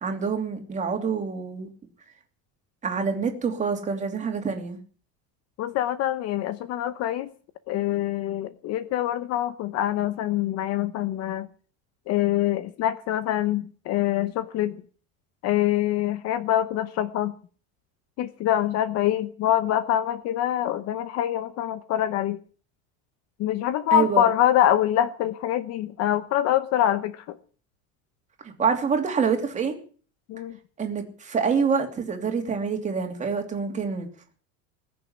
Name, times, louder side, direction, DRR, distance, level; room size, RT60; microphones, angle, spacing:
voice 1, 0.0-1.7 2.8-4.8 23.9-24.3 28.4-29.8 30.8-34.1, right 5 dB, 20° right, 2.8 m, -26 dB
voice 2, 5.6-7.3 7.7-11.5 12.1-14.8 15.4-17.3 18.2-22.4 23.4-27.4 30.3-30.6, left 12 dB, 45° left, 0.8 m, -25 dB
20.5 x 7.0 x 9.6 m
cardioid pair, 165°, 37 cm